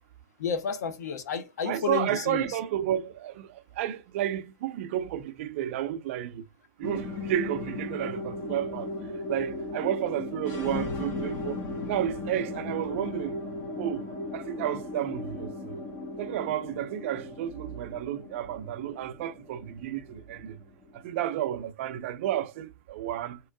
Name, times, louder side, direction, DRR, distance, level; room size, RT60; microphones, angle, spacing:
voice 1, 0.4-2.6, left 6 dB, 85° left, 1.0 m, -31 dB
voice 2, 1.7-6.4 6.8-8.9 9.3-13.4 13.8-14.1 14.3-15.8 16.2-20.6 20.9-23.4, right 11 dB, 50° right, 0.5 m, -31 dB
sound 1, 6.8-21.4, left 2 dB, 35° left, 1.4 m, -37 dB
3.6 x 3.0 x 4.6 m
supercardioid pair, 160°, 9 cm